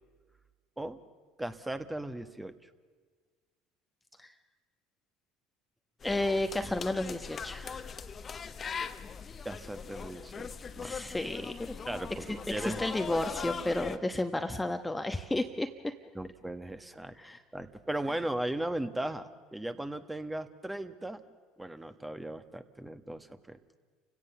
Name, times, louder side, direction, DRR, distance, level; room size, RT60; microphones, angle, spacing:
voice 1, 1.4-2.7 9.4-11.0 11.9-12.8 16.1-17.2 17.5-21.2 21.6-23.8, right 1 dB, 10° right, 9 dB, 1.4 m, -37 dB
sound 1, 6.0-14.0, left 6 dB, 35° left, 1.1 m, -40 dB
voice 2, 6.0-7.9 10.8-11.8 12.3-15.9 17.2-17.4, left 1 dB, 10° left, 7 dB, 1.1 m, -32 dB
29.5 x 17.0 x 7.0 m, 1.5 s
hypercardioid pair, 75°, 0 cm